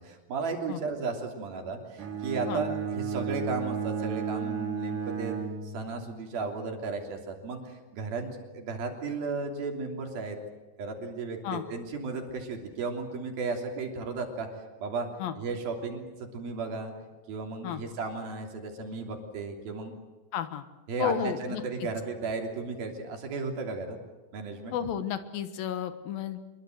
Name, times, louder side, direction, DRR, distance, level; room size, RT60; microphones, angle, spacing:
voice 1, 0.0-5.4 5.7-10.4 10.8-14.5 14.8-15.1 15.4-16.9 17.3-19.9 20.9-24.0 24.3-24.7, right 4 dB, 75° right, 3 dB, 5.0 m, -34 dB
Bowed string instrument, 2.0-6.2, right 7 dB, 60° right, 4.3 m, -33 dB
voice 2, 20.3-20.6 21.0-21.6 24.7-26.4, left 9 dB, 75° left, 11 dB, 3.0 m, -32 dB
25.5 x 23.0 x 8.0 m, 1.2 s
omnidirectional pair, 4.3 m